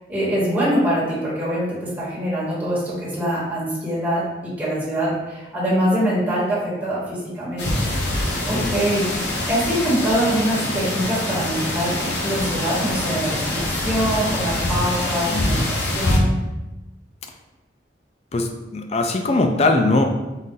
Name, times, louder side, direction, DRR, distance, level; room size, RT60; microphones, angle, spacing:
voice 1, 0.1-8.2 8.5-11.9 12.2-16.3, equal, 10° right, -9 dB, 1.4 m, -24 dB
sound 1, 7.6-16.2, left 1 dB, 80° left, 0.8 m, -24 dB
voice 2, 18.3-20.2, left 2 dB, 35° left, 4 dB, 0.4 m, -20 dB
4.0 x 2.5 x 3.8 m, 1.0 s
head